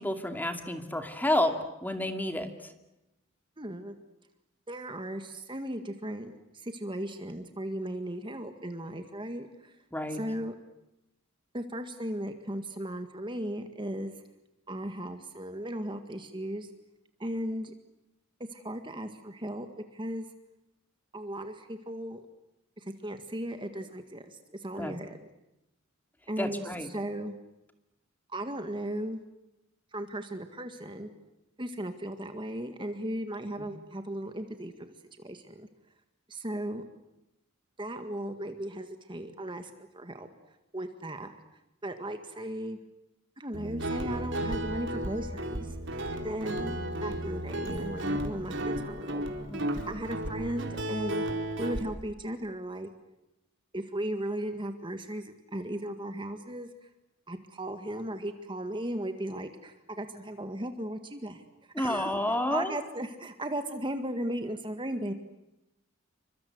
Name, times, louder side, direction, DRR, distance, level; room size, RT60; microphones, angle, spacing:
voice 1, 0.0-1.5 1.8-2.7 9.9-10.2 24.8-24.9 26.4-26.9 33.6-33.7 49.5-49.7 61.7-62.8, left 1 dB, 10° left, 6 dB, 2.5 m, -30 dB
voice 2, 3.6-4.0 4.7-9.8 10.1-10.5 11.5-14.1 14.7-16.7 17.2-17.7 18.5-20.3 21.1-22.2 22.8-25.3 26.3-27.3 28.3-29.2 29.9-31.1 31.6-35.7 36.3-36.8 37.8-40.3 40.7-41.3 41.8-42.8 43.4-45.8 46.2-46.7 47.0-49.2 49.9-51.2 51.6-52.9 53.7-56.9 57.3-61.4 61.8-62.1 62.5-65.1, right 1 dB, 25° right, 7 dB, 1.8 m, -36 dB
Guitar, 43.5-51.8, right 1 dB, 60° right, 4.2 m, -33 dB
29.0 x 25.5 x 8.0 m, 0.91 s
head